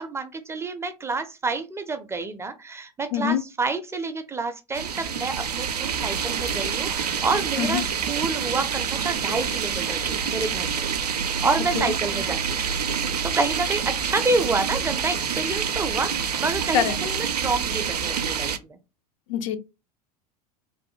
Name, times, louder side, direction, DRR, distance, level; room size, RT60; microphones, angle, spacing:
voice 1, 0.0-10.7 11.4-12.7 13.2-18.8, right 3 dB, 15° right, 0.4 m, -28 dB
voice 2, 3.1-3.4 7.6-7.8 11.8-11.9 16.7-17.0 19.3-19.6, left 9 dB, 55° left, 0.5 m, -24 dB
sound 1, 4.7-18.6, right 7 dB, 80° right, 0.4 m, -27 dB
3.1 x 2.1 x 3.0 m
figure-of-eight pair, 80°, 20 cm